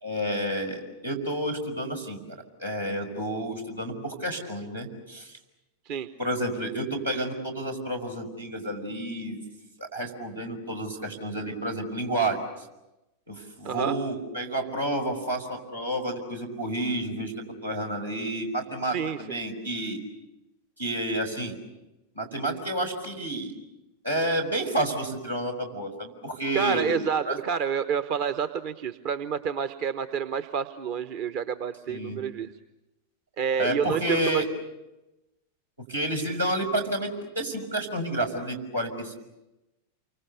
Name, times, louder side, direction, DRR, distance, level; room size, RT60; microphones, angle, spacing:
voice 1, 0.0-2.2 2.6-5.4 6.2-9.4 9.8-12.7 13.3-17.3 17.6-20.0 20.8-21.6 22.2-23.5 24.0-27.0 27.3-27.4 31.9-32.2 33.6-34.5 35.9-39.1, right 1 dB, 80° right, 1 dB, 5.5 m, -30 dB
voice 2, 18.9-19.3 26.5-32.5 33.4-34.4, right 7 dB, 45° right, 11 dB, 1.0 m, -29 dB
29.0 x 24.5 x 6.9 m, 0.98 s
figure-of-eight pair, 90°, 0 cm